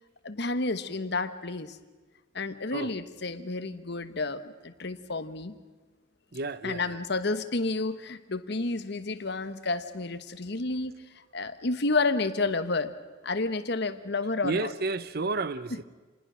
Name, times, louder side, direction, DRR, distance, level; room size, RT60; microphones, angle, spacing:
voice 1, 0.2-1.8 2.3-5.6 6.6-12.9 13.2-14.7 15.7-15.8, left 3 dB, 60° left, 1.2 m, -30 dB
voice 2, 6.3-7.0 14.4-15.7, right 3 dB, 55° right, 0.8 m, -31 dB
28.0 x 20.5 x 6.3 m
head